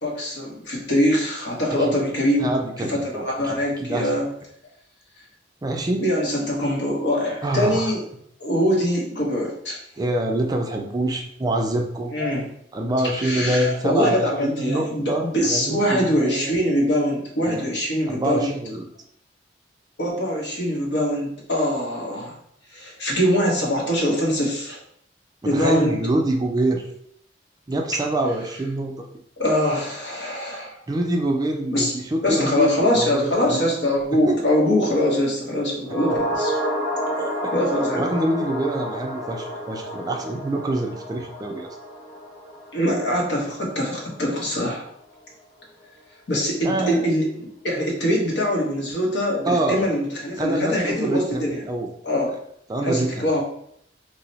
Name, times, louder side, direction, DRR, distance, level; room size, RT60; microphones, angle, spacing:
voice 1, 0.0-2.5 2.8-4.3 6.0-8.0 8.4-9.8 12.1-12.5 13.2-18.6 20.0-22.3 22.7-24.8 25.4-25.9 29.4-30.8 31.7-31.9 32.2-36.5 37.5-38.1 42.7-44.9 46.3-51.6 52.0-52.3 52.8-53.4, equal, 70° left, -2 dB, 0.9 m, -23 dB
voice 2, 2.4-4.1 5.6-6.1 7.4-7.9 10.0-12.2 12.7-16.5 17.5-17.6 18.1-18.8 25.4-26.9 27.7-29.1 30.9-33.7 34.3-34.4 37.2-37.4 37.9-41.7 46.6-47.1 49.4-49.8 50.4-51.9 52.7-53.3, right 1 dB, 20° right, 2 dB, 0.3 m, -25 dB
sound 1, 35.8-44.3 44.6-44.7, equal, 30° left, 1.4 m, -30 dB
2.8 x 2.0 x 4.0 m, 0.70 s
head